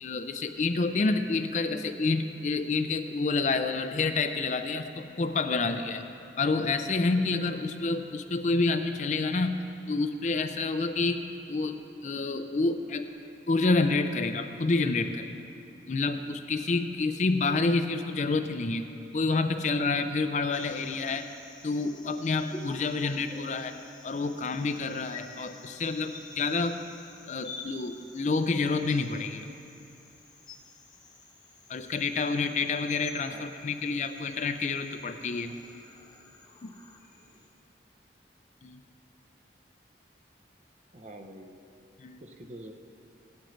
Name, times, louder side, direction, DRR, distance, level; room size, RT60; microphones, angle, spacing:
voice 1, 0.0-6.0 6.4-9.6 9.9-13.0 13.5-15.4 15.9-18.9 19.1-21.3 21.6-23.8 24.0-26.8 27.3-29.5 31.7-35.5 36.6-36.7 38.6-38.8 42.0-42.2, left 3 dB, 40° left, 8 dB, 0.4 m, -28 dB
sound 1, 20.5-37.5, left 3 dB, 25° left, 1.0 m, -50 dB
voice 2, 40.9-41.5 42.2-42.7, right 1 dB, 40° right, 4 dB, 0.7 m, -45 dB
16.0 x 11.5 x 3.2 m, 2.7 s
head